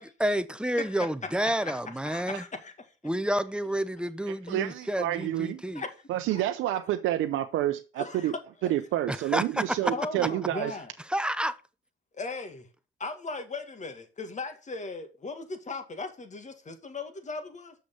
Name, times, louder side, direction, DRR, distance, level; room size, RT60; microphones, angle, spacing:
voice 1, 0.0-2.4 3.0-5.8 9.1-9.7 11.1-11.6, right 1 dB, 5° right, 0.8 m, -29 dB
voice 2, 1.5-2.7 5.7-5.9 6.3-6.4 8.0-8.3 9.9-10.9 12.2-12.7 13.0-17.7, left 3 dB, 35° left, 2.1 m, -37 dB
voice 3, 4.3-5.6 6.1-8.3 8.6-10.7, right 13 dB, 90° right, 0.7 m, -29 dB
6.8 x 6.3 x 5.6 m
cardioid pair, 90°, 20 cm